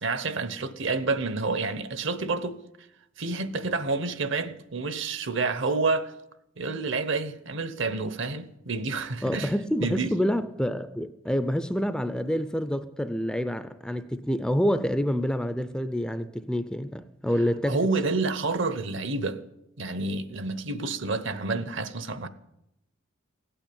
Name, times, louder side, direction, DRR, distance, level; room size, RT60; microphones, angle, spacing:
voice 1, 0.0-2.6 3.2-6.1 6.6-9.5 9.8-10.1 17.7-19.4 19.8-22.3, right 3 dB, 60° right, 0.9 m, -29 dB
voice 2, 9.2-17.8, equal, 5° left, 0.4 m, -27 dB
16.5 x 9.0 x 8.6 m
head